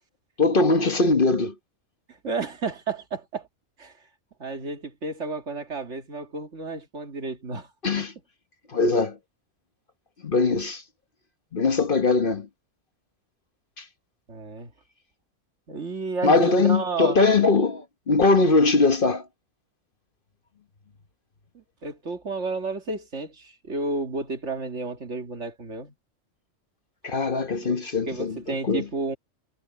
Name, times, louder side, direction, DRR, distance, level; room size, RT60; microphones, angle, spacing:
voice 1, 0.4-1.5 7.8-8.1 8.7-9.2 10.2-10.8 11.5-12.5 16.2-19.2 27.0-28.8, left 3 dB, 45° left, 1.3 m, -21 dB
voice 2, 2.1-3.5 3.8-3.9 4.4-7.7 8.0-8.1 14.3-14.7 15.7-17.2 21.5-25.9 27.6-29.2, right 3 dB, 65° right, 2.3 m, -32 dB
omnidirectional pair, 1.3 m